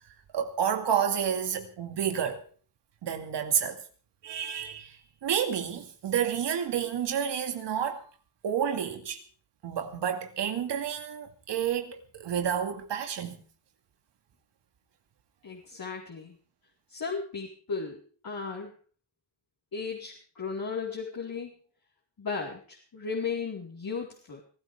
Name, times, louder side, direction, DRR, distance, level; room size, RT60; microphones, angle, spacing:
voice 1, 0.3-2.4 3.0-3.8 4.2-8.0 8.4-9.2 9.6-13.4, right 8 dB, 90° right, 2.3 m, -30 dB
voice 2, 15.4-16.4 16.9-18.7 19.7-21.5 22.2-24.4, left 5 dB, 55° left, 4.3 m, -35 dB
25.0 x 13.5 x 3.5 m
cardioid pair, 65°, 41 cm